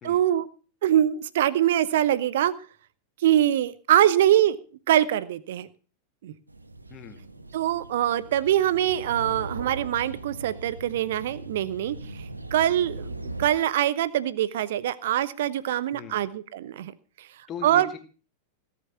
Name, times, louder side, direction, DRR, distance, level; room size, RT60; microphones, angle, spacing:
voice 1, 0.0-0.5 0.8-2.5 3.2-4.6 4.9-5.7 6.2-6.3 7.5-12.0 12.5-16.9 17.2-17.3 17.6-17.9, right 11 dB, 55° right, 18 dB, 0.9 m, -23 dB
sound 1, 6.5-13.5, right 2 dB, 80° right, 1.1 m, -39 dB
voice 2, 6.9-7.2 15.9-16.2 17.5-18.0, left 7 dB, 30° left, 7 dB, 2.1 m, -39 dB
17.0 x 7.6 x 5.8 m, 0.38 s
figure-of-eight pair, 90°, 0 cm